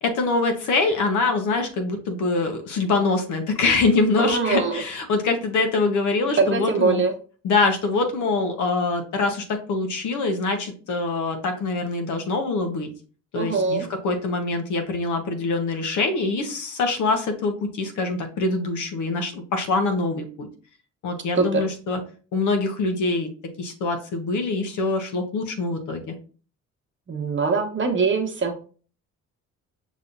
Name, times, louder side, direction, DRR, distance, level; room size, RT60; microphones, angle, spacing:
voice 1, 0.0-7.0 7.4-12.9 13.3-20.5 21.0-22.0 22.3-23.3 23.6-26.0, left 3 dB, 75° left, 5 dB, 1.0 m, -24 dB
voice 2, 4.2-4.8 6.4-7.1 13.3-13.9 21.4-21.7 27.1-28.5, right 4 dB, 40° right, 3 dB, 1.0 m, -22 dB
5.4 x 3.1 x 2.5 m, 0.40 s
cardioid pair, 90°, 30 cm